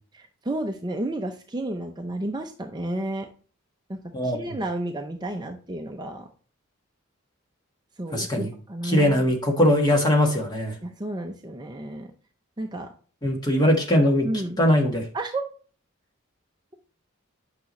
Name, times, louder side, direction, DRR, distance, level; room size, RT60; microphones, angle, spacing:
voice 1, 0.1-3.3 3.9-6.3 8.0-9.2 10.8-12.1 12.6-12.9 14.2-14.6 15.1-15.4, right 1 dB, 20° right, 4 dB, 0.5 m, -32 dB
voice 2, 4.1-4.6 8.1-8.5 8.8-10.7 13.2-14.3 14.6-15.0, left 1 dB, 20° left, 1 dB, 1.5 m, -21 dB
8.8 x 5.8 x 3.1 m, 0.41 s
head